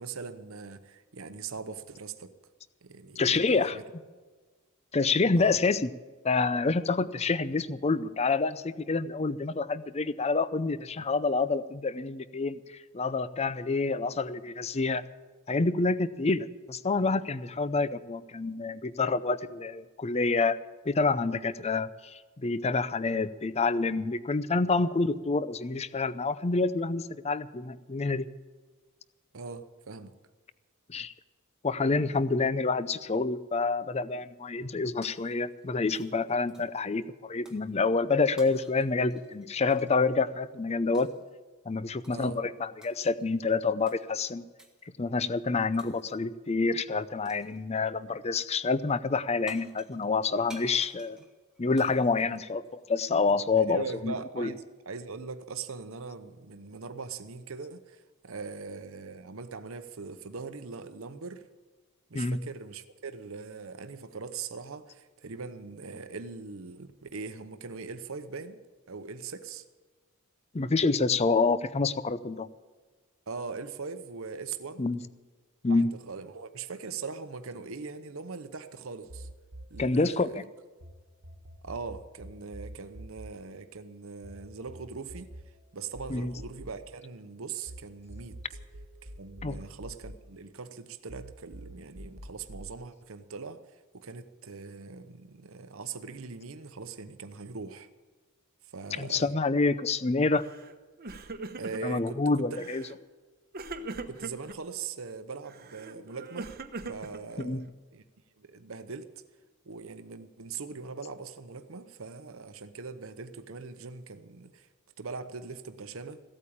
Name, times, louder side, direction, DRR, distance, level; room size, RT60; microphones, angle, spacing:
voice 1, 0.0-2.4 2.8-3.8 5.3-5.6 29.3-30.1 42.1-42.4 52.2-52.4 53.3-61.4 62.1-68.6 68.9-69.6 73.3-74.9 75.7-79.3 79.7-80.5 81.6-85.3 85.7-88.4 89.0-93.6 93.9-97.9 98.6-99.4 101.6-102.4 104.1-106.5 106.9-108.0 108.4-109.1 109.7-114.7 115.0-116.2, right 4 dB, 65° right, 0.9 m, -41 dB
voice 2, 3.2-3.8 4.9-5.9 6.2-12.6 12.9-15.0 15.5-20.6 20.8-28.3 30.9-31.1 31.6-41.1 41.7-44.4 45.0-51.2 51.6-54.5 62.1-62.4 70.5-72.5 74.8-75.0 75.6-75.9 79.8-80.4 86.1-86.3 89.4-89.6 99.0-100.4 101.8-102.8 107.4-107.6, left 3 dB, 30° left, 0.5 m, -27 dB
Shatter, 35.0-35.7 35.9-36.9 37.5-37.7 38.4-40.0 40.9-41.3 42.0-42.4 42.8-43.3 43.9-44.0 44.6-44.9 45.8-46.3 47.2-47.6 49.2-49.3 49.5-53.0, right 1 dB, 5° right, 1.6 m, -54 dB
sound 1, 79.1-80.9 81.2-87.8 88.1-90.8 91.1-92.7, right 1 dB, 85° right, 1.5 m, -46 dB
Crying sobbing, 100.4-100.7 101.0-102.0 102.5-103.0 103.5-104.6 105.5-107.7, right 3 dB, 45° right, 1.0 m, -41 dB
16.0 x 8.7 x 8.7 m
head